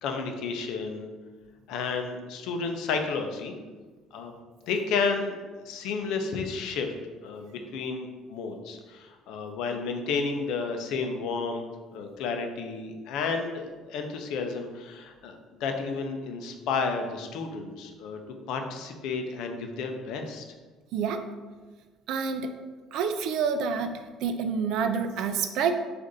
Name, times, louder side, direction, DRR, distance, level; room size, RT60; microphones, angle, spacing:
voice 1, 0.0-1.1 1.7-3.6 4.1-4.3 4.6-6.9 7.2-11.6 11.9-18.2 18.5-20.5, left 4 dB, 65° left, 4 dB, 0.5 m, -31 dB
voice 2, 20.9-21.2 22.1-22.5 22.9-25.8, right 6 dB, 60° right, 8 dB, 0.3 m, -28 dB
6.4 x 2.5 x 2.6 m, 1.3 s
cardioid pair, 175°, 0 cm